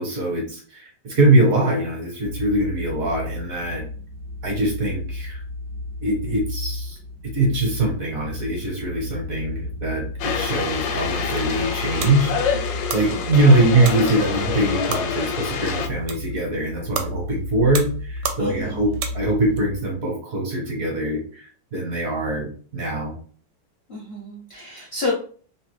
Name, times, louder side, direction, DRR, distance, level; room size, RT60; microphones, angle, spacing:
voice 1, 0.0-3.9 4.4-5.4 6.0-7.0 7.3-23.2, right 2 dB, 55° right, -1 dB, 1.2 m, -22 dB
sound 1, 2.2-20.0, left 2 dB, 40° right, 0.8 m, -33 dB
sound 2, 10.2-15.9, left 7 dB, 85° left, 1.3 m, -27 dB
sound 3, 11.0-19.6, right 7 dB, 80° right, 1.2 m, -35 dB
voice 2, 12.9-13.3 18.4-18.8 23.9-25.1, left 3 dB, 55° left, -4 dB, 0.6 m, -30 dB
3.0 x 2.1 x 3.1 m, 0.43 s
omnidirectional pair, 2.0 m